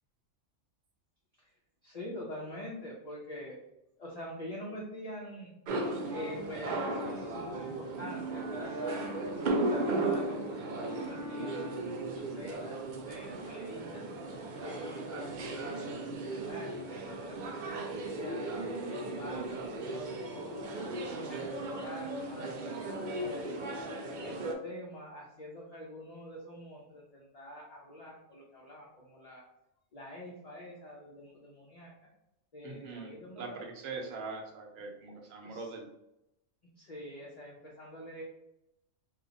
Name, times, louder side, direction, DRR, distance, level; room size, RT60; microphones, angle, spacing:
voice 1, 1.8-3.6 4.0-5.8 6.1-9.2 9.7-14.0 14.6-18.5 18.8-20.9 21.2-23.8 24.2-29.5 29.9-31.9 32.5-33.7 35.4-35.7 36.8-38.2, left 1 dB, 40° left, -4 dB, 0.6 m, -46 dB
sound 1, 5.7-24.6, right 2 dB, 65° right, 0.4 m, -36 dB
voice 2, 32.6-35.9, right 3 dB, 90° right, 2 dB, 1.1 m, -42 dB
2.8 x 2.4 x 3.9 m, 0.85 s
omnidirectional pair, 1.3 m